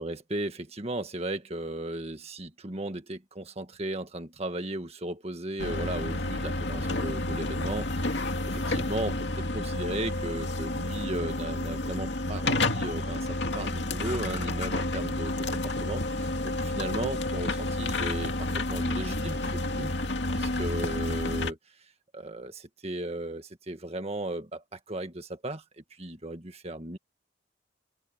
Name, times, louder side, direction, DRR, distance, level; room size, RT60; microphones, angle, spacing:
voice 1, 0.0-9.3 9.5-13.3 13.5-19.9 20.3-27.0, right 1 dB, 35° right, 1.8 m, -36 dB
sound 1, 5.6-21.5, left 2 dB, 70° left, 2.4 m, -30 dB
head